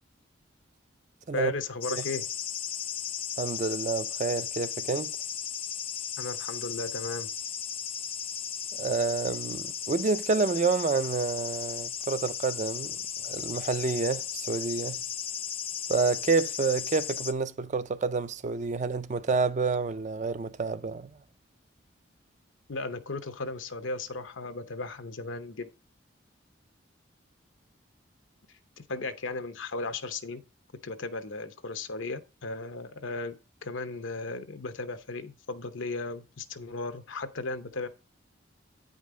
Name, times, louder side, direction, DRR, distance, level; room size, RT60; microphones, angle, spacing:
voice 1, 1.3-2.2 6.2-7.3 22.7-25.7 28.8-30.4 30.8-33.3 33.6-37.9, left 3 dB, 80° left, 0.8 m, -35 dB
sound 1, 1.8-17.3, left 9 dB, 30° left, 0.4 m, -35 dB
voice 2, 3.4-5.1 8.8-13.0 13.2-15.0 15.9-21.1, right 4 dB, 40° right, 0.4 m, -28 dB
9.1 x 5.2 x 3.7 m
head